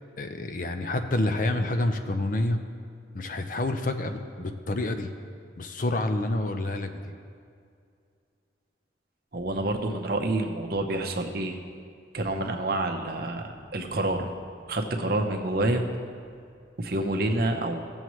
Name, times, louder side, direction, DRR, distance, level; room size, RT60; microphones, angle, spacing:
voice 1, 0.2-2.6 3.1-5.1 5.6-7.1, left 2 dB, 45° left, 7 dB, 0.5 m, -28 dB
voice 2, 9.3-11.6 12.1-14.3 14.7-15.9 16.8-17.8, right 2 dB, 55° right, 3 dB, 0.8 m, -28 dB
16.0 x 7.2 x 3.1 m, 2.3 s
head